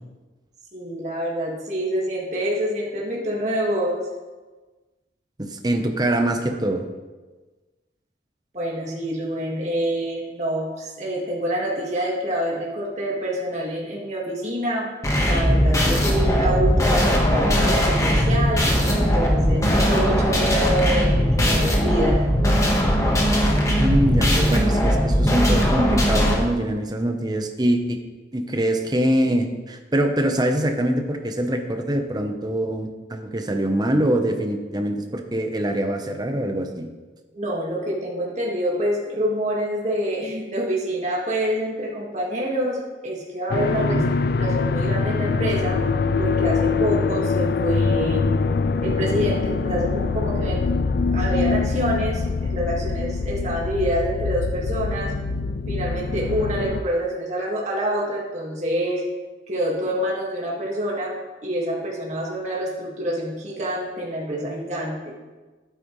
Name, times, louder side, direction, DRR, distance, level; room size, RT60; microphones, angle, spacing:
voice 1, 0.7-4.0 8.5-14.9 15.1-22.3 37.3-44.0 44.4-45.8 46.2-48.2 48.8-50.6 51.1-55.1 55.7-59.0 59.5-61.1 61.4-65.1, equal, 40° right, -4 dB, 1.9 m, -26 dB
voice 2, 5.4-6.8 23.8-28.0 28.3-36.9 43.9-44.1, right 1 dB, 20° right, 5 dB, 0.9 m, -23 dB
sound 1, 15.0-26.3, equal, 15° left, 1.4 m, -19 dB
sound 2, 43.5-56.8, left 4 dB, 55° left, 0.4 m, -23 dB
12.0 x 9.2 x 3.2 m, 1.3 s
head